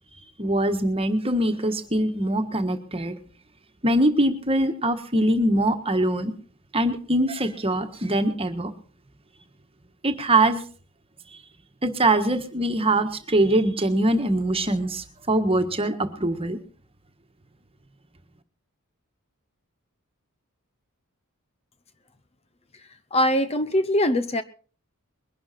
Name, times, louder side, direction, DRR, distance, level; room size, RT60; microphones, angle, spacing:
voice 1, 0.4-3.1 3.8-6.3 6.7-8.7 10.0-10.6 11.8-16.6, right 1 dB, 25° right, 8 dB, 1.5 m, -23 dB
voice 2, 23.1-24.4, left 1 dB, 30° left, 12 dB, 0.7 m, -22 dB
21.5 x 11.5 x 4.3 m, 0.41 s
head